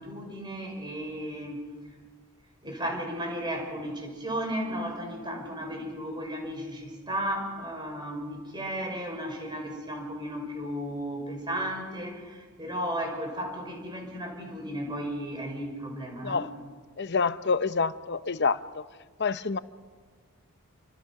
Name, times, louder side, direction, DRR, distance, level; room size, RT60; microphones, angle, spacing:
voice 1, 0.0-1.6 2.6-16.5, equal, 20° right, 5.5 m, -34 dB
voice 2, 17.0-18.6 19.2-19.6, left 4 dB, 50° left, 0.8 m, -27 dB
29.0 x 25.0 x 6.0 m
head